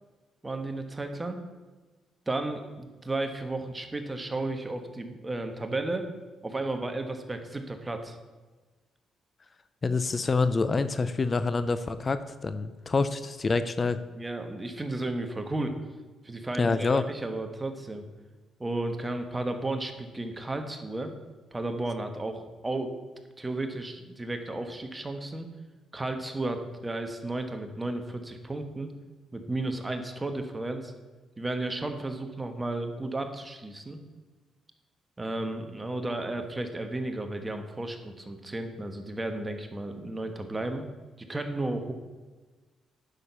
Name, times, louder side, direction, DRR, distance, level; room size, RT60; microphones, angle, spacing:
voice 1, 0.4-1.4 2.3-6.1 6.4-8.2 9.8-10.0 14.1-15.8 16.2-18.0 18.6-21.1 21.5-22.9 23.4-25.5 25.9-28.9 29.3-30.9 31.4-34.0 35.2-40.8 41.2-41.9, right 2 dB, 15° right, 6 dB, 1.3 m, -33 dB
voice 2, 9.8-14.0 16.6-17.0, left 4 dB, 35° left, 12 dB, 0.5 m, -26 dB
10.0 x 6.6 x 5.6 m, 1.3 s
cardioid pair, 90°, 0 cm